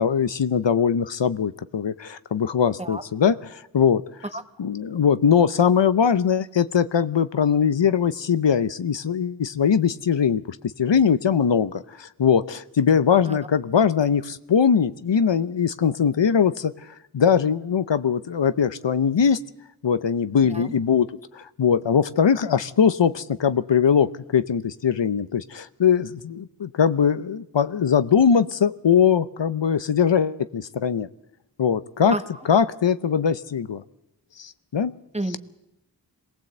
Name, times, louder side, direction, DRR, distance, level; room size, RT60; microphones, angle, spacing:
voice 1, 0.0-4.0 4.6-11.7 12.0-16.7 17.1-19.4 19.8-21.1 21.3-31.1 31.6-32.1 32.5-33.8 34.4-34.9, left 7 dB, 80° left, 14 dB, 0.7 m, -21 dB
voice 2, 2.8-3.0 4.3-4.4 13.2-13.4 20.5-20.7 32.1-32.2 35.1-35.4, right 1 dB, 15° right, 8 dB, 1.6 m, -30 dB
23.0 x 18.5 x 7.9 m, 0.87 s
wide cardioid pair, 45°, 43 cm